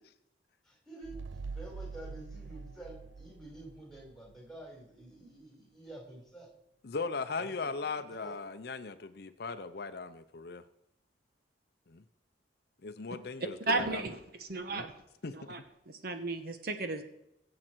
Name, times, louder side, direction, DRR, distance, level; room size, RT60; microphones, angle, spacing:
voice 1, 0.6-6.5 7.3-8.4, right 1 dB, 5° left, 0 dB, 4.0 m, -49 dB
sound 1, 1.0-4.4, right 4 dB, 85° right, 0.7 m, -44 dB
voice 2, 6.8-10.6 11.9-12.0 12.8-14.0 14.7-14.8 15.2-15.5, left 4 dB, 55° left, 10 dB, 0.6 m, -38 dB
voice 3, 13.7-14.9 15.3-15.6 15.9-17.0, right 3 dB, 55° right, 7 dB, 1.1 m, -34 dB
22.5 x 7.7 x 4.5 m, 0.82 s
head